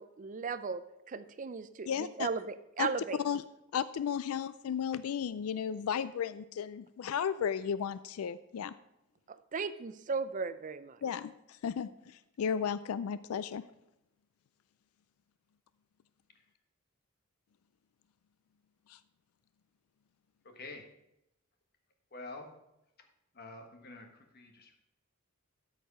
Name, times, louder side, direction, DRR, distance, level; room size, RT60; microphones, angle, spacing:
voice 1, 0.0-3.2 9.3-11.0, right 5 dB, 35° right, 13 dB, 0.4 m, -37 dB
voice 2, 1.9-2.3 2.8-2.9 3.2-3.4 3.7-8.7 11.0-11.3 11.6-11.9 12.4-13.6, left 7 dB, 80° left, 15 dB, 0.4 m, -34 dB
voice 3, 20.4-20.8 22.1-22.5 23.3-24.8, left 2 dB, 50° left, 4 dB, 1.4 m, -47 dB
13.0 x 4.8 x 5.4 m, 0.87 s
head